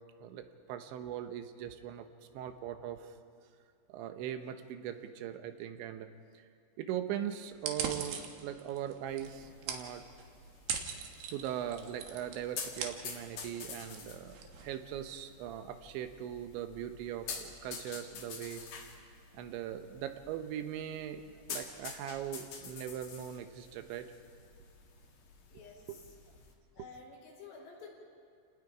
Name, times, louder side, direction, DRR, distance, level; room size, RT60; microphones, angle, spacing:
voice 1, 0.2-2.1 2.3-3.1 3.9-6.1 6.3-6.4 6.8-10.0 11.3-18.6 19.3-24.1 25.9-26.0 26.8-26.9, right 10 dB, 80° right, 8 dB, 3.2 m, -40 dB
sound 1, 7.5-15.3, right 6 dB, 65° right, 2.8 m, -42 dB
sound 2, 9.1-26.5, left 5 dB, 55° left, 3.6 m, -48 dB
voice 2, 25.5-26.0 26.8-28.0, left 4 dB, 90° left, -2 dB, 6.7 m, -51 dB
30.0 x 19.0 x 5.0 m, 2.3 s
omnidirectional pair, 5.4 m